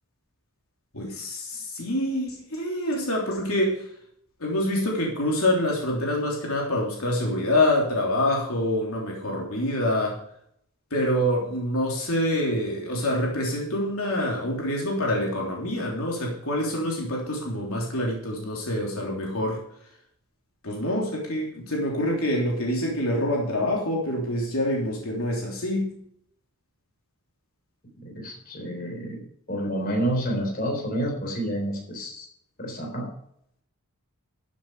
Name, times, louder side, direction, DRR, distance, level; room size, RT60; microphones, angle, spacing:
voice 1, 0.9-3.8 4.4-10.2 10.9-19.6 20.6-25.9, left 1 dB, 75° left, -2 dB, 3.3 m, -26 dB
voice 2, 28.0-29.2 29.5-32.3 32.6-33.1, right 1 dB, 40° left, 1 dB, 3.8 m, -29 dB
13.5 x 7.5 x 4.9 m, 0.68 s
head